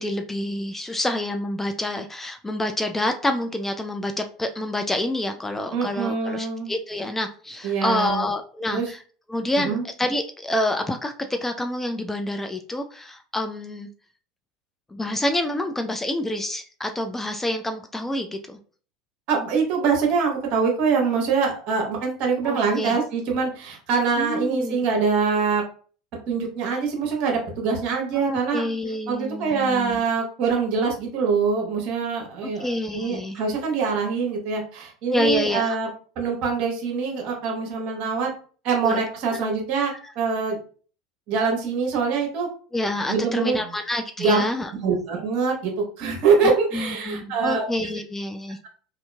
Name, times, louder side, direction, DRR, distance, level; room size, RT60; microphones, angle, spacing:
voice 1, 0.0-9.0 9.3-13.9 14.9-18.6 22.4-23.0 24.2-24.8 28.1-30.0 32.4-33.4 35.1-35.8 38.8-39.0 42.7-44.7 46.4-48.6, left 1 dB, 10° left, 5 dB, 0.3 m, -27 dB
voice 2, 5.7-6.7 7.6-8.3 8.7-8.9 9.6-9.8 19.3-25.6 26.3-28.6 29.1-35.9 36.2-38.3 38.6-40.6 41.3-42.5 43.1-43.7 44.2-44.4 44.8-47.6, right 5 dB, 55° right, 0 dB, 1.0 m, -24 dB
2.8 x 2.6 x 2.2 m, 0.42 s
hypercardioid pair, 80°, 3 cm